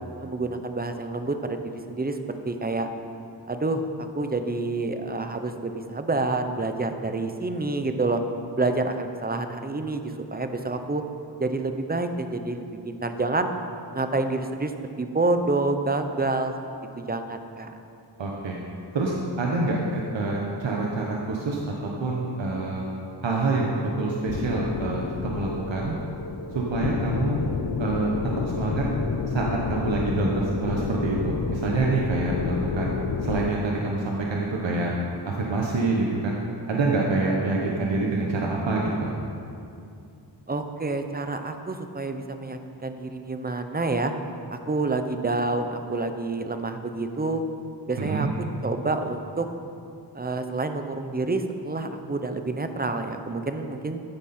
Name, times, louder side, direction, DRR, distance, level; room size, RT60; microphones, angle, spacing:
voice 1, 0.2-1.6 1.9-2.2 2.4-2.9 3.5-3.9 4.1-8.2 8.6-11.0 11.4-13.5 13.9-14.7 15.0-16.5 17.0-17.7 40.5-44.1 44.5-47.4 47.9-48.3 48.6-49.5 50.1-54.0, right 3 dB, 20° right, 7 dB, 0.7 m, -28 dB
voice 2, 18.2-18.6 18.9-21.7 22.0-22.9 23.2-26.0 26.5-27.4 27.8-28.1 28.5-28.9 29.3-32.9 33.2-34.9 35.2-36.4 36.7-39.1 48.0-48.3, right 3 dB, 90° right, -2 dB, 1.3 m, -26 dB
sound 1, 24.3-33.5, left 5 dB, 55° left, 0.7 m, -30 dB
14.0 x 9.4 x 4.4 m, 2.6 s
wide cardioid pair, 120°, 44 cm